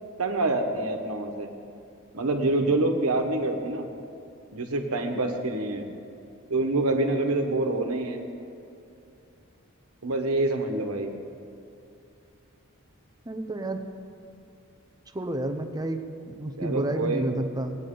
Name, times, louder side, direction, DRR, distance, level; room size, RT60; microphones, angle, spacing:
voice 1, 0.2-1.5 2.1-3.9 4.5-5.9 6.5-8.2 10.0-11.1 16.6-17.3, right 2 dB, 90° right, 3 dB, 1.2 m, -26 dB
voice 2, 13.3-13.8 15.1-17.8, right 1 dB, 20° right, 6 dB, 0.7 m, -30 dB
17.5 x 9.1 x 3.9 m, 2.7 s
head